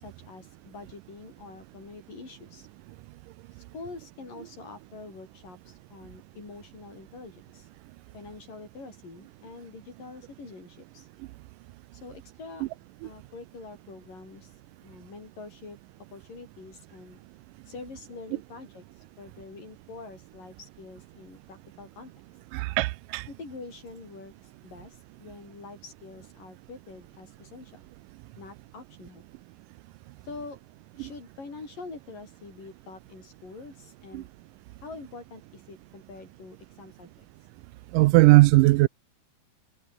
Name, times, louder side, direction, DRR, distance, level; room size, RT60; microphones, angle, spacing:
voice 1, 0.0-2.7 3.5-7.7 8.1-11.1 12.0-12.7 13.0-14.5 14.8-15.8 16.1-17.2 17.7-18.9 19.2-22.1 23.3-24.3 24.6-27.8 28.4-29.3 30.2-30.6 30.9-34.3 34.8-37.3, left 3 dB, 80° left, 9.7 m, -45 dB
voice 2, 22.5-23.3 31.0-31.1 34.1-34.2 37.9-38.9, right 20 dB, 80° right, 2.1 m, -18 dB
omnidirectional pair, 3.8 m